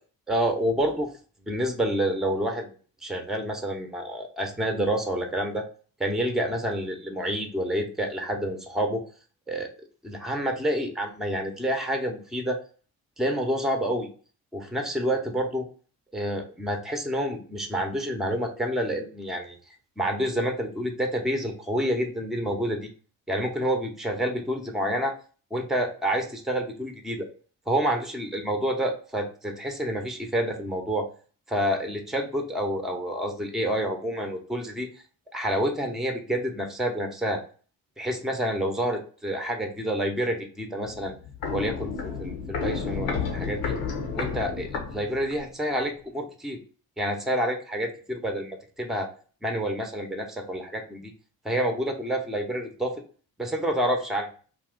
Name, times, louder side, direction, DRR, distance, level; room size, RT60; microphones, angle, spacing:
voice 1, 0.3-1.1 1.4-2.7 3.0-5.6 6.0-9.0 9.5-9.7 10.0-12.6 13.2-14.1 14.5-15.6 16.1-19.6 20.0-22.9 23.3-25.1 25.5-27.3 27.7-31.1 31.5-34.9 35.3-37.4 38.0-41.1 41.5-41.9 42.2-43.7 44.1-46.6 47.0-49.1 49.4-51.1 51.4-53.0 53.4-54.3, equal, ahead, 4 dB, 0.7 m, -28 dB
Walk footsteps, 40.8-45.5 45.8-45.9, left 5 dB, 80° left, 0.8 m, -31 dB
2.7 x 2.4 x 3.7 m, 0.40 s
supercardioid pair, 50°, 43 cm